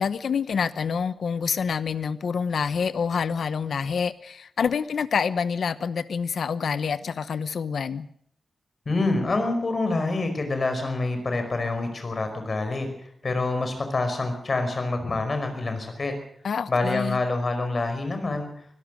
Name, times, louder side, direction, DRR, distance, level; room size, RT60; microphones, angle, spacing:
voice 1, 0.0-8.1 16.4-17.2, left 6 dB, 75° left, 14 dB, 0.9 m, -27 dB
voice 2, 8.9-12.9 13.2-16.1 16.7-18.5, left 2 dB, 40° left, 7 dB, 5.2 m, -26 dB
24.5 x 17.0 x 6.4 m, 0.66 s
wide cardioid pair, 155°, 0 cm